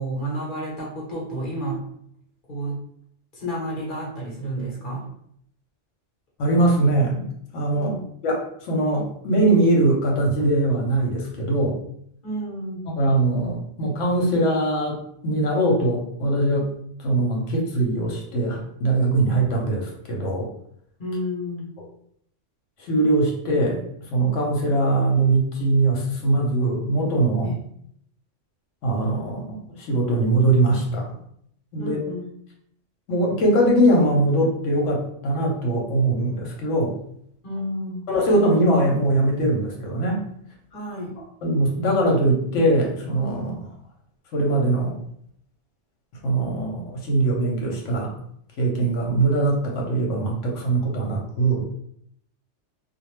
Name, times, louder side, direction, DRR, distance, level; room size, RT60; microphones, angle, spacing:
voice 1, 0.0-1.9 2.5-2.8 3.3-5.1 7.7-8.0 12.2-12.9 21.0-21.7 27.4-27.6 31.8-32.3 37.4-38.1 40.7-41.1, right 1 dB, 45° left, -5 dB, 1.0 m, -31 dB
voice 2, 6.4-7.3 7.5-7.9 8.2-11.8 13.0-16.7 17.0-20.5 22.8-27.6 28.8-31.2 31.7-32.0 33.1-37.0 38.1-40.3 41.4-43.7 44.3-45.0 46.2-48.1 48.6-51.6, right 2 dB, 75° left, 0 dB, 1.1 m, -21 dB
2.5 x 2.1 x 3.1 m, 0.68 s
omnidirectional pair, 1.3 m